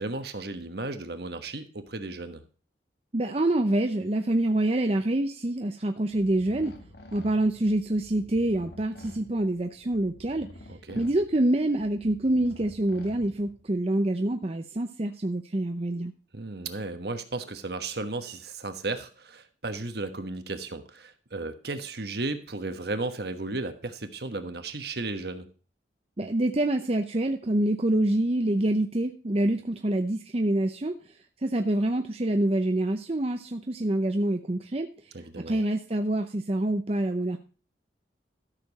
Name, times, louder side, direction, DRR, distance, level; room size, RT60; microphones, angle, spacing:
voice 1, 0.0-2.4 10.7-11.0 16.3-25.5 35.1-35.7, right 2 dB, 60° right, 8 dB, 1.3 m, -34 dB
voice 2, 3.1-6.7 7.1-10.5 11.0-16.1 26.2-30.9 31.4-34.9 35.5-37.4, right 1 dB, 35° right, 5 dB, 0.6 m, -26 dB
sound 1, 6.1-13.8, left 1 dB, 60° left, 1.7 m, -49 dB
13.0 x 6.9 x 4.0 m, 0.37 s
head